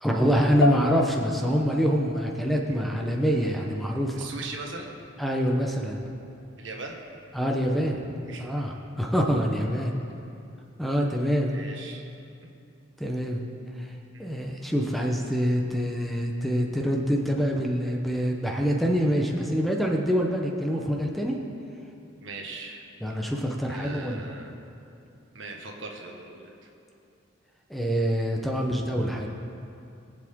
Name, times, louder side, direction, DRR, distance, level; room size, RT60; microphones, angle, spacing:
voice 1, 0.0-4.3 5.2-6.0 7.3-8.0 8.4-9.9 10.8-11.6 13.0-13.4 13.8-13.9 14.2-21.4 23.0-24.2 27.7-29.3, equal, ahead, 0 dB, 0.9 m, -25 dB
sound 1, 0.6-10.2, left 4 dB, 80° left, 0.4 m, -36 dB
voice 2, 4.2-4.9 6.6-7.0 8.2-8.5 9.9-10.1 11.5-12.0 22.2-22.8 23.7-24.6 25.3-26.5, right 3 dB, 75° right, 1 dB, 1.5 m, -39 dB
22.0 x 7.8 x 3.7 m, 2.6 s
head